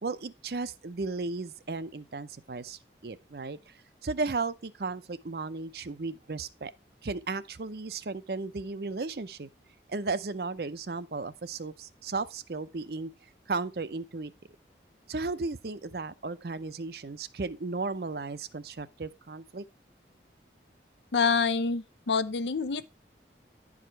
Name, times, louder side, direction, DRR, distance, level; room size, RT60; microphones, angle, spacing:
voice 1, 0.0-3.6 4.0-6.7 7.0-9.5 9.9-13.1 13.5-14.3 15.1-19.6, right 3 dB, 65° right, 0.6 m, -35 dB
voice 2, 21.1-22.8, left 5 dB, 85° left, 0.6 m, -27 dB
11.0 x 4.9 x 4.5 m
head